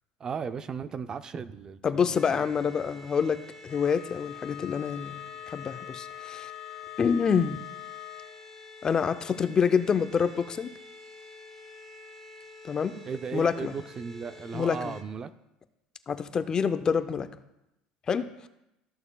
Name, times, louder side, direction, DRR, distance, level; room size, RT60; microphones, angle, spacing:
voice 1, 0.2-2.5 13.0-15.3, right 6 dB, 30° right, 12 dB, 0.4 m, -36 dB
voice 2, 1.8-6.5 7.0-7.6 8.8-10.7 12.6-13.0 13.3-13.7 14.5-15.0 16.1-17.3 18.1-18.5, left 6 dB, 30° left, 11 dB, 0.5 m, -27 dB
sound 1, 2.1-15.0, left 3 dB, 10° left, 1.2 m, -48 dB
Wind instrument woodwind instrument, 3.7-8.4, left 16 dB, 85° left, 0.5 m, -43 dB
14.5 x 6.7 x 2.3 m, 0.90 s
supercardioid pair, 110°, 2 cm